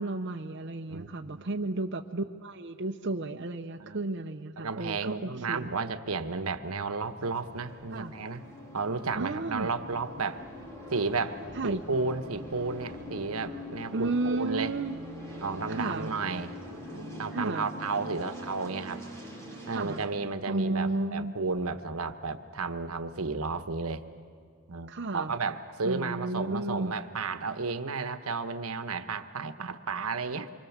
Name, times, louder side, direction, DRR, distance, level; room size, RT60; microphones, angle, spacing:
voice 1, 0.0-5.7 7.9-8.1 9.1-9.7 11.5-11.8 13.9-15.0 15.7-16.1 17.3-17.7 19.7-20.0 20.5-21.4 24.9-25.3 25.8-27.0, right 2 dB, 55° right, 3 dB, 0.8 m, -33 dB
voice 2, 0.9-1.5 3.8-4.1 4.6-8.4 8.7-10.4 10.9-11.4 11.6-14.7 15.4-16.5 16.9-19.0 19.7-24.0 24.7-30.5, right 4 dB, 80° right, 10 dB, 1.2 m, -33 dB
sound 1, 7.0-20.1, equal, 15° left, 3.3 m, -43 dB
27.0 x 24.0 x 7.3 m, 2.3 s
head